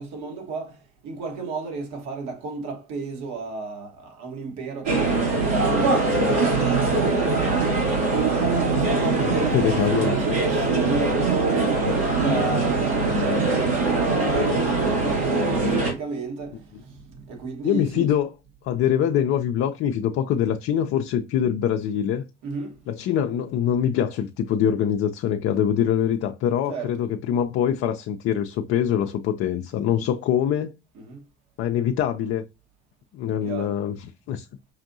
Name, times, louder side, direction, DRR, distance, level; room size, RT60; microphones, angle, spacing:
voice 1, 0.0-7.8 8.5-18.1 22.4-22.8 26.7-27.0 30.9-31.2 33.4-33.8, right 3 dB, 60° right, 1.5 m, -33 dB
sound 1, 4.9-15.9, right 3 dB, 80° right, 2.2 m, -22 dB
voice 2, 9.2-10.1 17.6-18.3 18.6-22.2 22.9-30.7 31.6-32.4 33.1-34.5, left 9 dB, 45° left, 0.5 m, -24 dB
5.5 x 2.5 x 2.6 m
hypercardioid pair, 70°, 32 cm